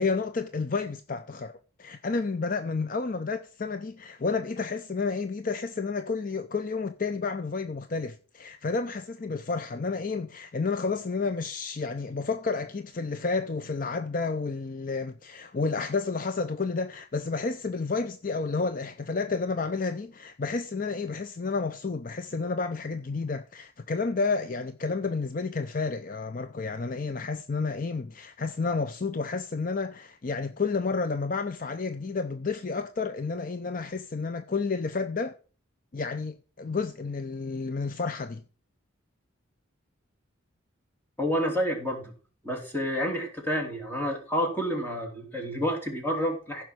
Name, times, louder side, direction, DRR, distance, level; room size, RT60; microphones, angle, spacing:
voice 1, 0.0-1.5 1.8-35.4 35.9-38.4, left 4 dB, 40° left, 0.5 m, -30 dB
voice 2, 41.2-42.1 42.4-46.6, equal, 10° left, 3.1 m, -29 dB
15.0 x 5.7 x 6.1 m
head